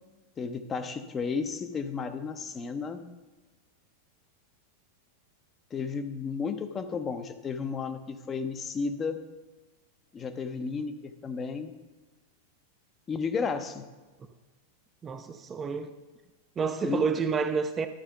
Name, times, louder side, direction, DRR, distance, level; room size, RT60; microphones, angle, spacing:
voice 1, 0.4-3.1 5.7-9.2 10.1-11.7 13.1-13.9 16.8-17.1, left 5 dB, 20° left, 0.6 m, -33 dB
voice 2, 15.0-15.9 16.6-17.9, right 5 dB, 20° right, 0.4 m, -29 dB
11.5 x 4.3 x 5.7 m
figure-of-eight pair, 90°, 0 cm